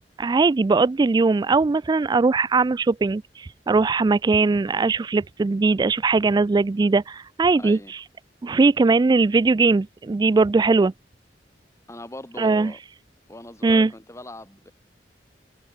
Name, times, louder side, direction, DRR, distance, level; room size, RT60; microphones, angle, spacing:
voice 1, 0.2-8.0 8.4-10.9 12.4-12.7 13.6-13.9, right 3 dB, 25° right, 0.3 m, -20 dB
voice 2, 7.5-7.9 11.9-12.8 13.3-14.7, left 1 dB, 15° left, 3.0 m, -40 dB
head